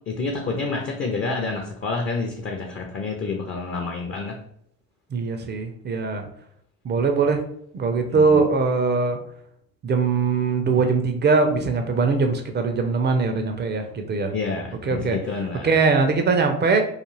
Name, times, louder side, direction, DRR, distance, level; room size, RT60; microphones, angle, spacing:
voice 1, 0.1-4.4 8.1-8.4 14.3-15.8, left 3 dB, 30° left, 2 dB, 0.5 m, -28 dB
voice 2, 5.1-6.2 6.8-7.4 7.7-9.2 9.8-14.3 14.8-15.2 15.6-16.8, right 4 dB, 25° right, 5 dB, 0.4 m, -21 dB
2.4 x 2.3 x 3.0 m, 0.70 s
figure-of-eight pair, 50°, 42 cm